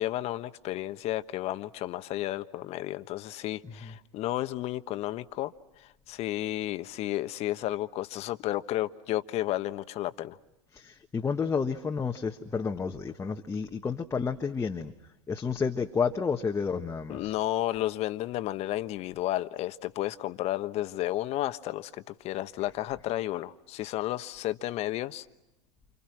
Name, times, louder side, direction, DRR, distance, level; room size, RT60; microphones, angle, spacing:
voice 1, 0.0-5.5 5.8-10.4 17.1-25.2, left 15 dB, 40° left, 1.4 m, -32 dB
voice 2, 10.7-14.9 15.3-17.3, left 5 dB, 15° left, 1.5 m, -30 dB
29.5 x 29.0 x 6.1 m
hypercardioid pair, 95°, 16 cm